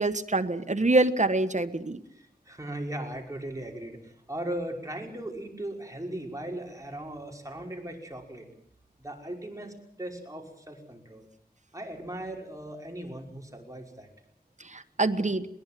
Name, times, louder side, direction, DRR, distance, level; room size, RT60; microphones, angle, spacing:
voice 1, 0.0-2.0 14.6-15.5, right 2 dB, 50° right, 9 dB, 1.5 m, -25 dB
voice 2, 2.1-8.5 9.0-11.3 11.7-14.1, right 1 dB, 20° right, 1 dB, 5.7 m, -38 dB
22.0 x 20.0 x 7.7 m, 0.69 s
wide cardioid pair, 60°, 16 cm